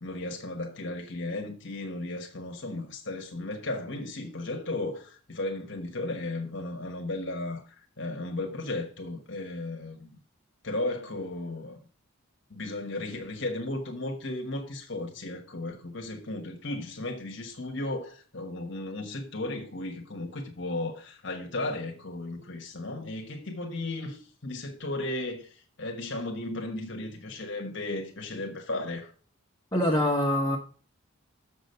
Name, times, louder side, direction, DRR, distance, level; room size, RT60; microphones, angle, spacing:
voice 1, 0.0-10.1 10.6-11.8 12.5-29.1, left 2 dB, 60° left, 1.3 m, -35 dB
voice 2, 29.7-30.6, left 1 dB, 15° left, 1.0 m, -24 dB
7.1 x 6.1 x 6.6 m
head